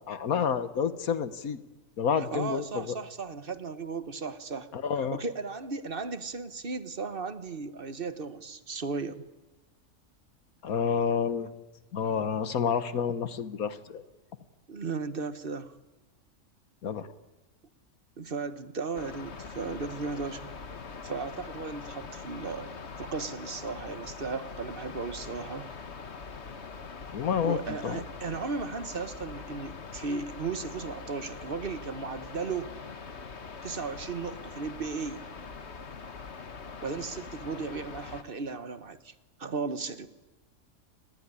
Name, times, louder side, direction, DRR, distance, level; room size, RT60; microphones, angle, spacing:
voice 1, 0.1-1.6 2.0-2.9 4.7-5.2 10.6-11.5 11.9-14.0 16.8-17.1 27.1-28.0, left 7 dB, 70° left, 13 dB, 1.6 m, -29 dB
voice 2, 2.3-4.7 5.1-9.3 14.7-15.8 18.2-20.5 21.0-25.7 27.4-32.7 33.6-35.3 36.8-39.1 39.4-40.1, right 4 dB, 40° right, 12 dB, 1.4 m, -36 dB
sound 1, 18.9-38.2, left 5 dB, 50° left, 1.7 m, -43 dB
29.0 x 19.0 x 9.9 m, 1.1 s
omnidirectional pair, 1.5 m